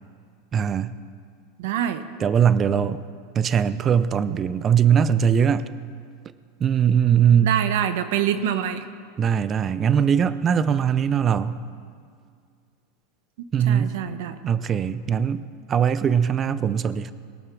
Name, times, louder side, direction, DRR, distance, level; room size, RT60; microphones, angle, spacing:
voice 1, 0.5-0.9 2.2-3.0 3.4-5.7 6.6-7.6 9.2-11.6 13.5-13.9 14.4-15.4 15.7-17.1, right 8 dB, 25° right, 15 dB, 0.5 m, -20 dB
voice 2, 1.6-2.0 7.4-8.8 13.4-14.4, right 10 dB, 70° right, 10 dB, 1.0 m, -26 dB
21.5 x 7.2 x 6.1 m, 2.2 s
supercardioid pair, 140°, 0 cm